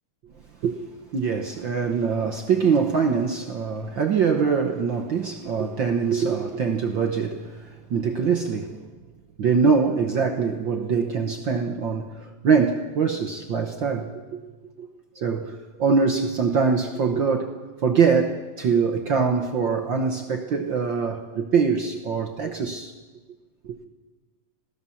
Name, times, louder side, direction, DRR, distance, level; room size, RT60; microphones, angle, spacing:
voice 1, 1.1-8.9 9.4-14.4 14.8-14.9 15.1-17.5 17.8-22.9 23.6-23.7, right 5 dB, 65° right, 1.2 m, -23 dB
26.0 x 17.0 x 7.2 m
omnidirectional pair, 3.6 m